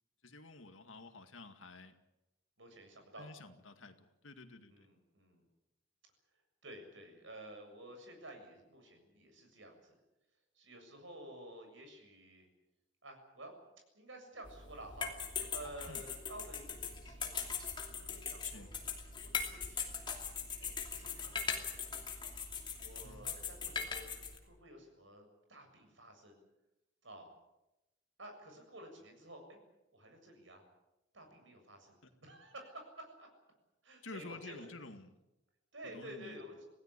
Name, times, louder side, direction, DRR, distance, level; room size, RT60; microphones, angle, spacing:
voice 1, 0.2-1.9 3.2-4.9 15.9-16.0 18.4-18.7 23.0-23.3 32.0-32.1 34.0-35.1 35.9-36.4, left 3 dB, 80° left, 8 dB, 2.1 m, -51 dB
voice 2, 2.6-3.3 4.7-5.4 6.6-9.9 10.6-12.5 13.0-13.6 13.9-15.1 15.5-17.6 17.8-18.7 19.2-20.0 20.6-21.4 21.7-21.9 22.8-24.1 24.4-25.2 25.5-26.4 27.0-27.3 28.2-29.6 29.9-30.6 31.1-33.3 33.8-34.7 35.7-36.5, right 1 dB, 70° right, 4 dB, 7.1 m, -52 dB
sound 1, 14.4-24.4, left 6 dB, 25° left, 2.8 m, -41 dB
26.5 x 17.5 x 8.4 m, 0.96 s
head